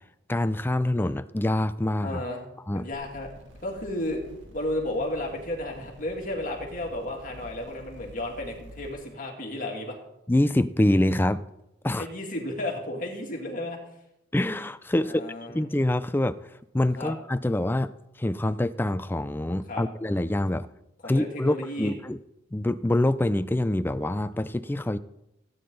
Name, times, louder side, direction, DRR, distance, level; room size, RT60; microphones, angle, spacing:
voice 1, 0.3-2.2 2.7-2.9 10.3-11.4 11.8-12.1 14.3-15.2 15.5-16.4 16.7-17.9 18.2-20.7 21.0-22.2 22.5-25.0, left 1 dB, 10° left, 13 dB, 0.4 m, -25 dB
voice 2, 2.0-2.4 2.7-3.3 3.6-4.2 4.5-10.0 11.9-13.8 15.0-15.6 16.9-17.1 19.7-19.8 21.0-21.9, left 1 dB, 45° left, 0 dB, 2.6 m, -33 dB
sound 1, 2.9-8.9, equal, 65° right, 2.4 m, -48 dB
17.0 x 9.5 x 4.0 m, 0.86 s
head